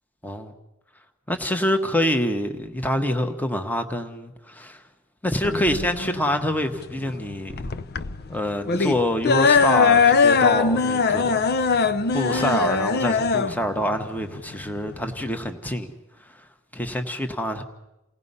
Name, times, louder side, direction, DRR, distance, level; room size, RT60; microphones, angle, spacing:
voice 1, 1.3-4.8 5.2-7.7 8.3-11.8 12.1-16.4 16.7-17.6, equal, 10° left, 5 dB, 1.3 m, -26 dB
sound 1, 5.4-15.5, left 5 dB, 50° left, 0.7 m, -21 dB
29.0 x 18.0 x 5.6 m, 0.94 s
head